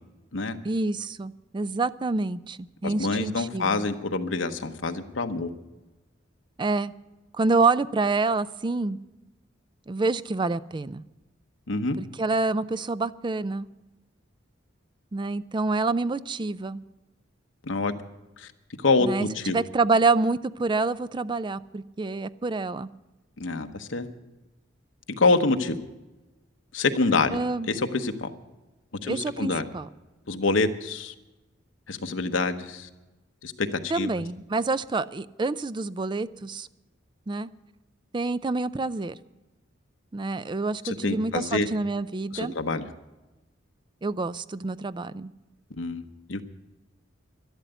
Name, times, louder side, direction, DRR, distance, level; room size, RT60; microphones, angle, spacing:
voice 1, 0.6-3.9 6.6-6.9 7.3-9.0 9.9-11.0 12.0-13.7 15.1-16.8 19.0-22.9 27.3-27.7 29.0-29.9 33.9-36.7 37.3-37.5 38.1-39.2 40.1-42.5 44.0-45.3, right 3 dB, 25° right, 15 dB, 0.4 m, -27 dB
voice 2, 2.8-5.5 11.7-12.0 17.6-17.9 18.4-18.5 18.8-19.6 23.4-24.1 25.2-25.8 26.7-27.4 27.7-28.3 29.0-29.7 30.3-31.1 31.9-32.9 33.4-34.1 40.8-41.7 42.3-42.9 45.8-46.0 46.3-46.4, left 3 dB, 80° left, 7 dB, 1.0 m, -26 dB
12.5 x 11.5 x 7.9 m, 1.1 s
head